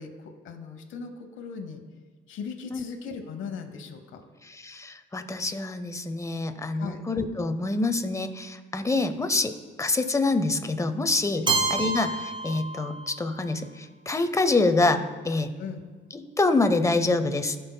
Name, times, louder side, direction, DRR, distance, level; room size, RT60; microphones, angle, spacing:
voice 1, 0.0-1.8 2.3-4.2 6.7-7.0 11.4-11.6 15.6-15.8, left 5 dB, 75° left, 5 dB, 0.9 m, -38 dB
voice 2, 4.4-15.6 16.1-17.6, left 3 dB, 15° left, 9 dB, 0.6 m, -26 dB
Keyboard (musical), 11.5-13.4, right 3 dB, 25° right, 1.5 m, -28 dB
14.5 x 5.4 x 2.2 m, 1.4 s
cardioid pair, 90°, 20 cm